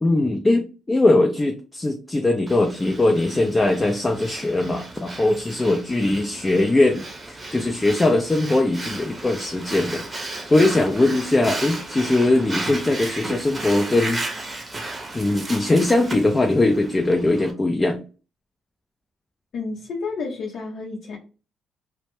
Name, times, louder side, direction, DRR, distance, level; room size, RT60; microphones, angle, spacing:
voice 1, 0.0-14.2 15.1-18.0, left 2 dB, 20° left, 4 dB, 0.3 m, -20 dB
Breathing, 2.5-17.5, right 2 dB, 25° right, 0.7 m, -34 dB
voice 2, 19.5-21.2, left 4 dB, 65° left, -2 dB, 0.6 m, -30 dB
2.1 x 2.1 x 3.0 m, 0.34 s
cardioid pair, 90°, 0 cm